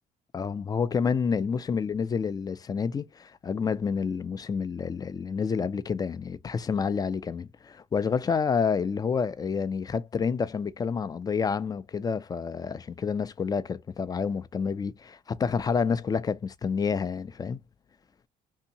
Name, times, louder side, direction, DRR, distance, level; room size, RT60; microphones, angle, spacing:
voice 1, 0.3-17.6, left 6 dB, 20° left, 0.3 m, -29 dB
2.7 x 2.7 x 2.7 m
cardioid pair, 110°, 17 cm